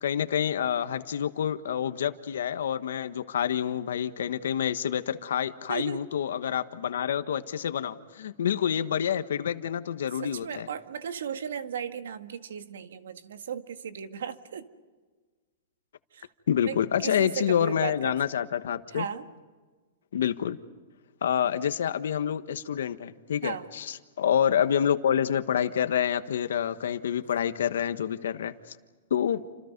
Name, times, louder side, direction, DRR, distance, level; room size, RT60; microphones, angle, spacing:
voice 1, 0.0-10.7 16.5-19.0 20.1-20.6 21.2-28.8 29.1-29.4, left 9 dB, 85° left, 11 dB, 1.4 m, -27 dB
voice 2, 5.7-6.0 10.1-14.7 16.1-16.3 16.6-18.2 18.9-19.3 23.4-23.7, right 8 dB, 90° right, 9 dB, 1.8 m, -36 dB
29.5 x 27.0 x 5.4 m, 1.4 s
hypercardioid pair, 160°, 0 cm